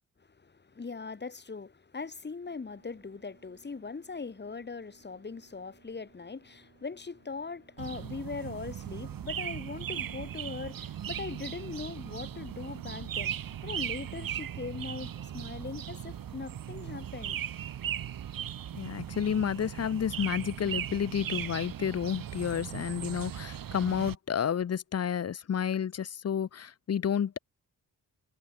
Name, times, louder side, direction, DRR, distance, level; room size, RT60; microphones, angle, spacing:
voice 1, 0.2-17.4, left 4 dB, 30° left, 2.0 m, -40 dB
sound 1, 2.4-18.7, right 6 dB, 55° right, 7.1 m, -64 dB
sound 2, 7.8-24.2, right 10 dB, 75° right, 1.1 m, -38 dB
voice 2, 18.7-27.4, left 8 dB, 45° left, 0.7 m, -31 dB
wide cardioid pair, 160°, 34 cm